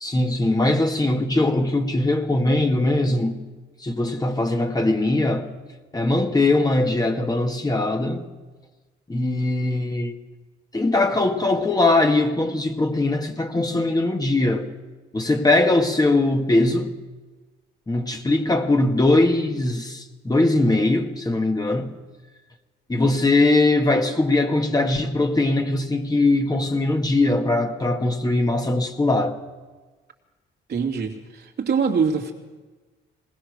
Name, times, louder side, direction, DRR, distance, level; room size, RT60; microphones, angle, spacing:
voice 1, 0.0-3.4 3.8-5.5 5.9-8.3 9.1-10.1 10.7-14.7 15.1-16.9 17.9-21.9 22.9-29.4, left 2 dB, 20° left, 2.0 m, -21 dB
voice 2, 30.7-32.3, right 5 dB, 55° right, 2.9 m, -24 dB
20.0 x 19.5 x 6.7 m
cardioid pair, 90°, 20 cm